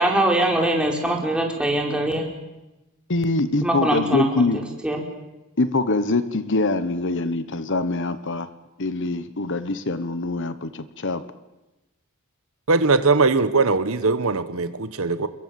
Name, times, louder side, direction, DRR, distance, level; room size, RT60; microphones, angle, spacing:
voice 1, 0.0-2.3 3.6-5.0, right 1 dB, 5° right, 0 dB, 4.7 m, -22 dB
voice 2, 3.1-4.6 5.6-8.5 8.8-11.2, left 2 dB, 55° left, 13 dB, 1.2 m, -24 dB
voice 3, 12.7-15.3, right 3 dB, 65° right, 12 dB, 1.2 m, -20 dB
28.0 x 22.5 x 7.8 m, 1.0 s
head